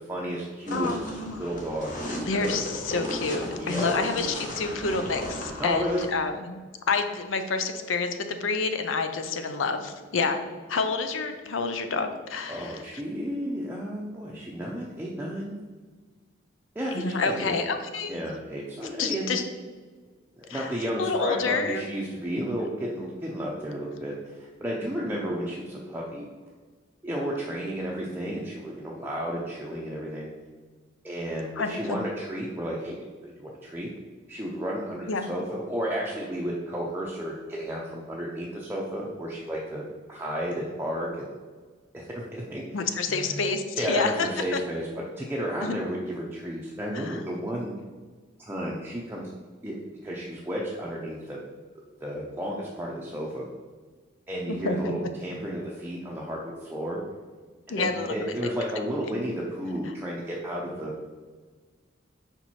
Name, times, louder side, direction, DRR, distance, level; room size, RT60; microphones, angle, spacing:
voice 1, 0.1-1.9 3.6-4.0 5.6-6.1 12.5-15.6 16.8-17.5 18.1-19.3 20.4-26.2 27.0-30.3 31.0-33.0 33.2-33.9 34.3-41.4 41.9-43.4 43.8-44.9 45.2-47.7 48.4-49.3 49.6-49.8 50.0-51.4 52.0-53.4 54.3-57.0 57.7-60.9, equal, 10° right, -4 dB, 0.5 m, -32 dB
voice 2, 0.7-1.4 2.2-6.6 6.9-10.4 10.7-12.8 16.9-18.1 19.0-19.4 20.5-20.7 21.0-21.8 31.6-32.0 35.1-35.3 42.7-44.6 45.6-45.8 46.9-47.2 54.5-54.9 57.7-58.1, left 4 dB, 85° left, 8 dB, 0.6 m, -28 dB
sound 1, 0.7-6.0, equal, 45° left, 1.1 m, -35 dB
5.2 x 4.5 x 4.2 m, 1.4 s
head